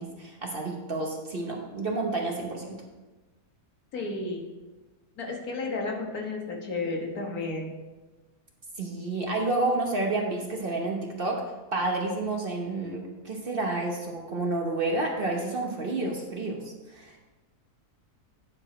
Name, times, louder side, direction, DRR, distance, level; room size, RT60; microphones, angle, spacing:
voice 1, 0.0-2.8 8.8-11.4 11.7-17.2, right 2 dB, 40° right, 1 dB, 1.0 m, -30 dB
voice 2, 3.9-4.4 5.2-7.7, left 3 dB, 75° left, 0 dB, 1.8 m, -32 dB
9.8 x 4.8 x 4.9 m, 1.2 s
omnidirectional pair, 1.6 m